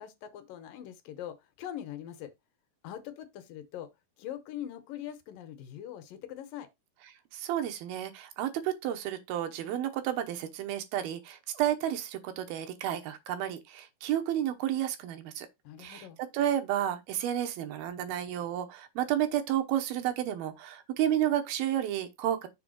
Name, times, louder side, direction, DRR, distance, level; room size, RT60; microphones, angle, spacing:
voice 1, 0.0-2.3 2.8-3.9 4.2-6.7 15.6-16.2, left 11 dB, 75° left, 2.4 m, -42 dB
voice 2, 7.1-15.5 15.8-22.5, right 11 dB, 90° right, 2.9 m, -31 dB
6.9 x 3.5 x 6.2 m
omnidirectional pair, 4.2 m